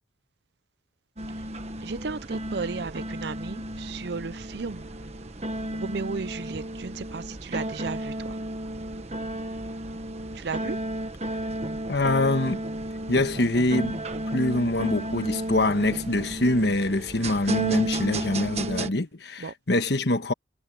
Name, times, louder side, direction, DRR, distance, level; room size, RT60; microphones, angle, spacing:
sound 1, 1.2-18.9, right 1 dB, 35° right, 1.4 m, -33 dB
voice 1, 1.8-4.9 5.7-8.4 10.4-10.8 19.4-19.5, right 4 dB, 60° right, 0.5 m, -34 dB
voice 2, 11.9-12.6 13.1-14.0 14.3-20.3, left 2 dB, 60° left, 1.3 m, -24 dB
head